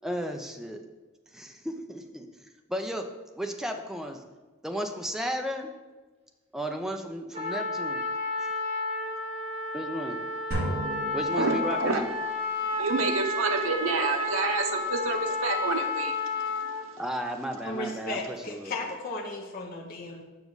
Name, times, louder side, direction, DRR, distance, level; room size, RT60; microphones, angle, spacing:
voice 1, 0.0-0.8 1.3-2.3 2.7-3.1 3.4-4.2 4.6-5.7 6.5-8.0 9.7-10.2 11.1-12.1 17.0-18.7, equal, ahead, 4 dB, 0.5 m, -34 dB
Trumpet, 7.3-16.8, left 2 dB, 30° right, 1.3 m, -31 dB
sound 1, 10.5-12.2, equal, 50° right, 2.4 m, -34 dB
voice 2, 11.3-12.0 12.8-16.2 16.5-16.8, right 3 dB, 85° right, 5 dB, 0.9 m, -28 dB
voice 3, 17.6-20.2, left 2 dB, 45° left, -1 dB, 0.8 m, -35 dB
7.0 x 5.9 x 4.0 m, 1.3 s
head